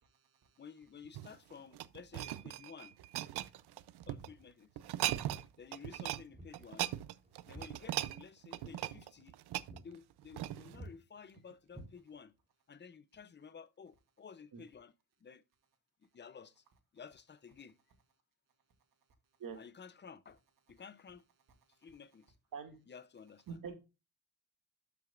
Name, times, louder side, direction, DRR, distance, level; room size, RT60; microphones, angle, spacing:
voice 1, 0.0-0.6 14.5-14.6 19.4-19.6 22.5-22.8 23.5-23.7, right 6 dB, 55° right, 2.3 m, -46 dB
voice 2, 0.6-3.0 4.1-4.8 5.6-6.9 7.4-9.4 9.8-12.3 12.7-14.9 15.2-15.4 16.1-16.6 16.9-17.8 19.6-20.4 20.7-21.2 21.7-22.3 22.9-23.4, left 6 dB, 30° left, 0.6 m, -53 dB
sound 1, 1.0-4.3 4.8-5.5 5.7-6.2 6.5-10.8 11.4-11.5, right 14 dB, 80° right, 0.6 m, -39 dB
Walk footsteps, 4.1-4.4 5.3-5.5 6.3-6.6 6.9-8.3 8.6-8.8 9.2-9.4 9.7-9.9 10.2-10.5 10.7-11.0 11.7-12.4, right 1 dB, 15° right, 3.3 m, -52 dB
12.5 x 5.9 x 2.4 m
wide cardioid pair, 155°, 39 cm